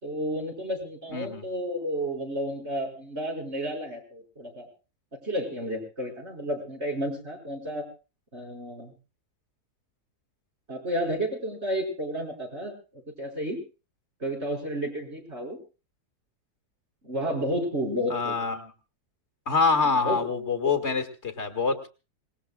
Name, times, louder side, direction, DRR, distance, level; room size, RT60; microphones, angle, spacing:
voice 1, 0.0-4.7 5.2-7.8 8.3-8.9 10.7-13.6 14.2-15.6 17.0-18.4 20.0-20.2 20.9-21.0, equal, 45° right, 0 dB, 5.7 m, -31 dB
voice 2, 1.1-1.4 18.1-18.7 19.5-21.9, left 4 dB, 45° left, 8 dB, 2.1 m, -26 dB
26.0 x 20.0 x 2.3 m, 0.34 s
omnidirectional pair, 1.7 m